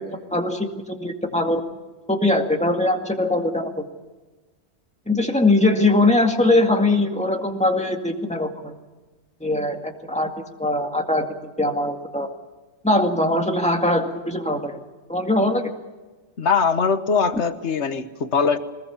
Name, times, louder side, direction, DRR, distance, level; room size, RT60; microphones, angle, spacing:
voice 1, 0.0-1.6 2.1-3.9 5.1-8.8 9.4-11.3 11.6-12.3 12.8-14.8 15.1-15.7, left 2 dB, 5° left, 3 dB, 2.0 m, -21 dB
voice 2, 16.4-18.6, left 5 dB, 80° left, 10 dB, 1.5 m, -21 dB
23.0 x 20.0 x 7.1 m, 1.3 s
omnidirectional pair, 1.1 m